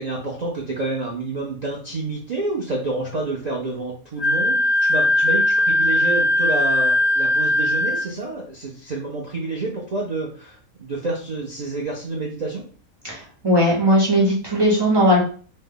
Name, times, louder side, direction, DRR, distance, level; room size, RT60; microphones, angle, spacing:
voice 1, 0.0-12.6, right 2 dB, 80° right, -3 dB, 0.3 m, -28 dB
Wind instrument woodwind instrument, 4.2-8.1, left 1 dB, 50° left, 1.4 m, -19 dB
voice 2, 13.0-15.2, equal, 20° right, -4 dB, 0.8 m, -18 dB
3.1 x 2.0 x 3.7 m, 0.43 s
omnidirectional pair, 1.5 m